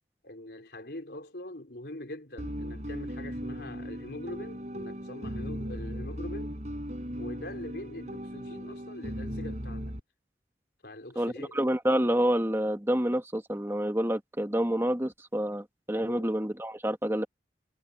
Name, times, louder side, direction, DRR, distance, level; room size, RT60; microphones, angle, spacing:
voice 1, 0.2-6.6 7.2-10.0 10.8-11.6 16.0-16.3, left 1 dB, 65° left, 4.4 m, -43 dB
sound 1, 2.4-10.0, equal, 40° right, 6.7 m, -37 dB
voice 2, 11.1-17.3, equal, 15° right, 1.6 m, -28 dB
head